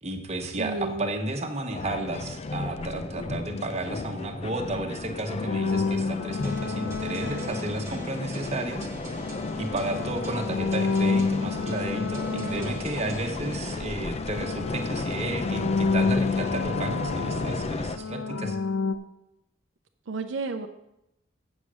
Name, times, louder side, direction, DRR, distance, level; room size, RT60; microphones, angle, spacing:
voice 1, 0.0-9.3 9.5-18.6, right 2 dB, 35° right, 4 dB, 1.1 m, -33 dB
voice 2, 0.6-1.1 12.3-12.9 20.1-20.7, right 3 dB, 75° right, 6 dB, 0.6 m, -32 dB
sound 1, 1.7-18.0, left 3 dB, 35° left, 0.4 m, -34 dB
sound 2, 5.5-8.4 9.0-13.8 14.1-19.0, left 4 dB, 85° left, 0.5 m, -30 dB
sound 3, 6.4-14.0, equal, 15° right, 1.3 m, -41 dB
8.0 x 7.2 x 6.3 m, 0.86 s
head